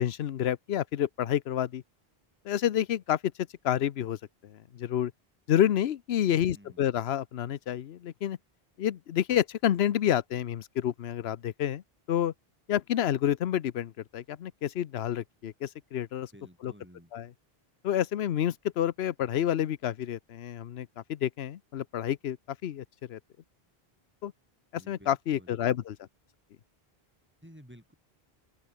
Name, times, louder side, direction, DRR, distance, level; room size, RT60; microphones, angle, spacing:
voice 1, 0.0-1.8 2.4-3.2 3.6-4.2 4.4-5.1 5.5-8.4 8.8-11.8 12.1-12.3 12.7-16.3 16.6-16.7 17.1-17.3 17.8-22.4 22.6-23.2 24.2-24.3 24.9-26.0, left 10 dB, 85° left, 1.0 m, -29 dB
voice 2, 6.3-6.9 16.3-17.1 24.7-25.6 27.4-27.9, equal, 10° right, 8.0 m, -53 dB
open air
omnidirectional pair, 1.0 m